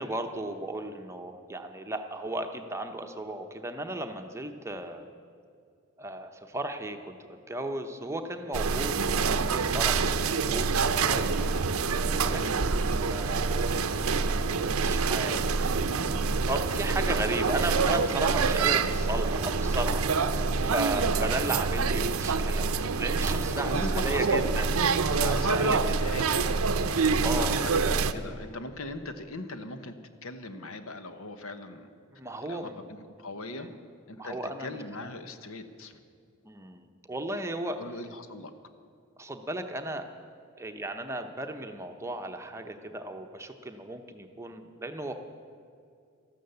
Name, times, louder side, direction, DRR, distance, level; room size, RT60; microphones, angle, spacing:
voice 1, 0.0-5.0 6.0-11.3 12.2-14.0 14.6-15.7 16.4-24.7 25.1-25.8 26.9-27.6 32.2-32.7 33.6-33.7 34.2-35.1 36.4-37.8 39.2-40.0 40.6-45.1, right 1 dB, 15° right, 6 dB, 0.8 m, -35 dB
sound 1, 8.5-28.1, right 4 dB, 80° right, 0.7 m, -26 dB
voice 2, 9.1-9.4 12.3-12.6 20.8-21.1 23.6-24.7 25.0-26.5 27.2-29.9 30.2-31.9 32.4-33.7 34.1-36.0 37.8-38.5, left 2 dB, 70° left, 9 dB, 1.0 m, -39 dB
13.5 x 12.5 x 7.9 m, 2.3 s
head